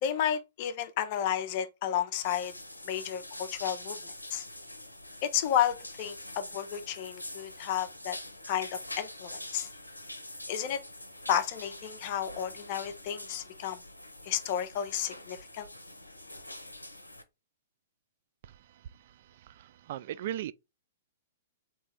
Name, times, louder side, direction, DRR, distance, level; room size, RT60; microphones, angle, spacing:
voice 1, 0.0-2.5 2.9-4.4 5.2-8.2 8.4-9.7 10.5-10.8 11.3-13.8 14.3-15.7, left 10 dB, 40° left, 0.6 m, -32 dB
sound 1, 2.2-17.2, left 1 dB, 85° left, 0.6 m, -45 dB
voice 2, 19.4-20.5, right 12 dB, 50° right, 0.3 m, -37 dB
3.6 x 3.0 x 4.4 m
figure-of-eight pair, 110°, 0 cm